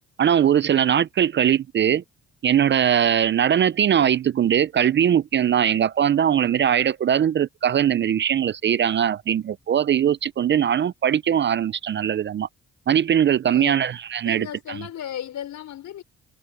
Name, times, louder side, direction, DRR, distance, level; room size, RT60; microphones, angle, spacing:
voice 1, 0.2-2.0 2.4-12.5 12.9-14.5, right 9 dB, 40° right, 0.4 m, -20 dB
voice 2, 13.4-13.8 14.2-16.0, left 10 dB, 70° left, 5.5 m, -35 dB
cardioid pair, 90°, 30 cm